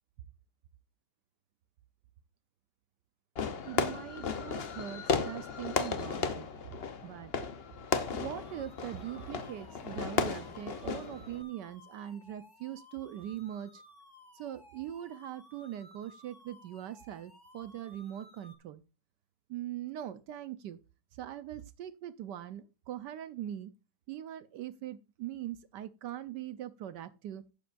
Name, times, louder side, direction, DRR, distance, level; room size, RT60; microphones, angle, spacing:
Fireworks, 3.4-11.4, left 5 dB, 75° left, 0.5 m, -35 dB
voice 1, 3.6-6.5 7.0-7.3 8.1-13.8 14.3-18.8 19.5-20.8 21.1-23.7 24.1-27.4, right 11 dB, 70° right, 1.0 m, -41 dB
sound 1, 7.9-18.6, left 1 dB, 15° left, 1.2 m, -57 dB
11.5 x 8.4 x 2.5 m
omnidirectional pair, 2.3 m